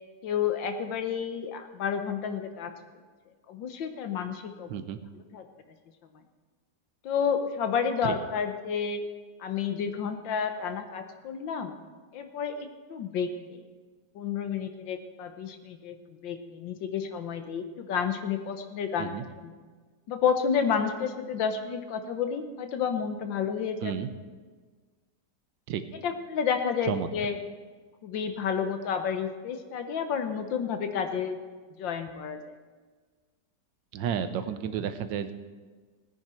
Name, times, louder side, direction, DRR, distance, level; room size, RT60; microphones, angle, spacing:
voice 1, 0.2-2.7 3.5-4.7 5.3-5.4 7.0-9.0 9.4-11.7 12.1-13.6 14.1-19.1 19.4-19.5 20.1-23.9 26.0-27.4 28.0-31.4 31.8-32.5, left 7 dB, 85° left, 7 dB, 1.7 m, -30 dB
voice 2, 33.9-35.3, right 8 dB, 80° right, 11 dB, 1.5 m, -31 dB
17.5 x 9.5 x 4.4 m, 1.4 s
omnidirectional pair, 2.0 m